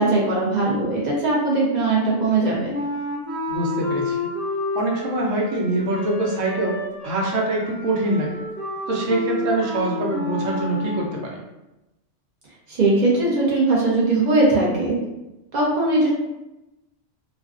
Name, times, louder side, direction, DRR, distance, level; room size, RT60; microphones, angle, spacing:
voice 1, 0.0-2.8 12.7-15.0 15.5-16.1, right 2 dB, 60° right, -5 dB, 0.4 m, -20 dB
Wind instrument woodwind instrument, 2.7-11.1, left 1 dB, 10° right, 0.8 m, -30 dB
voice 2, 3.5-4.2 4.7-8.3 8.9-11.4, right 1 dB, 85° right, -2 dB, 1.0 m, -24 dB
2.4 x 2.2 x 2.3 m, 0.98 s
omnidirectional pair, 1.3 m